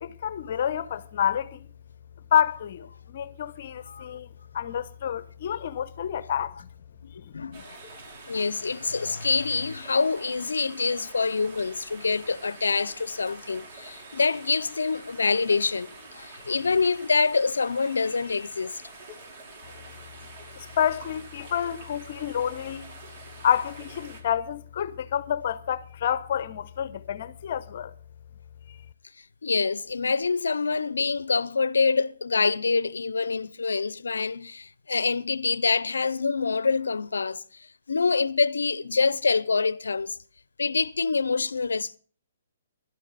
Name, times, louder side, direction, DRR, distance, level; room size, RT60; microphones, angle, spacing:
voice 1, 0.0-1.7 2.3-6.7 7.2-7.6 20.6-22.9 23.4-27.9 28.7-28.8, left 9 dB, 55° left, 0.8 m, -29 dB
voice 2, 7.3-7.8 8.3-15.9 16.1-18.8 29.4-37.4 37.9-40.2 40.6-42.0, left 4 dB, 90° left, 0.6 m, -26 dB
sound 1, 7.5-24.2, right 3 dB, 45° right, 5.4 m, -46 dB
16.5 x 12.5 x 4.1 m
hypercardioid pair, 140°, 0 cm